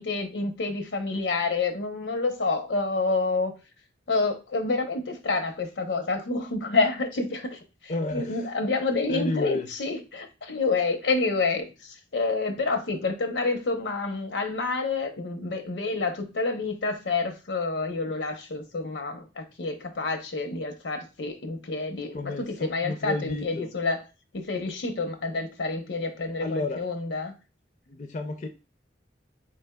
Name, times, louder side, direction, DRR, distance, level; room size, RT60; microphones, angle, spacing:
voice 1, 0.0-3.5 4.1-24.0 24.3-27.3, left 3 dB, 85° left, 0.7 m, -28 dB
voice 2, 7.9-8.5 9.1-9.7 22.1-23.7 26.4-26.8 27.9-28.5, left 2 dB, 40° left, 0.4 m, -31 dB
4.1 x 3.3 x 2.2 m
head